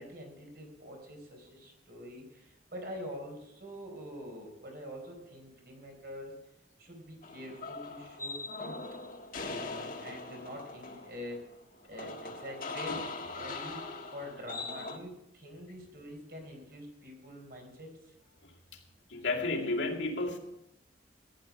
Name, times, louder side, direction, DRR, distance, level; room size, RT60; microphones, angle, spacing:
voice 1, 0.0-6.3 6.8-8.8 9.4-11.4 11.8-13.0 13.3-18.1, equal, 55° right, 2 dB, 4.3 m, -45 dB
sound 1, 7.2-15.0, left 3 dB, 45° left, 1.5 m, -41 dB
voice 2, 19.1-20.4, left 2 dB, 80° left, -1 dB, 2.3 m, -32 dB
15.0 x 10.5 x 5.2 m, 0.85 s
head